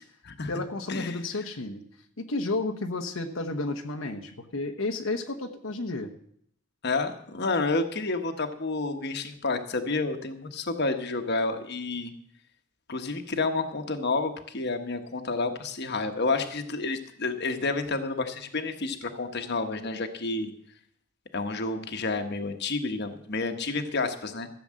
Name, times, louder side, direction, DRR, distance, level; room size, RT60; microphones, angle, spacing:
voice 1, 0.5-1.8 2.2-6.1, left 2 dB, 80° left, 3 dB, 1.0 m, -32 dB
voice 2, 6.8-12.1 12.9-20.5 21.3-24.5, left 3 dB, 55° left, 7 dB, 1.2 m, -30 dB
14.5 x 7.0 x 7.6 m, 0.68 s
head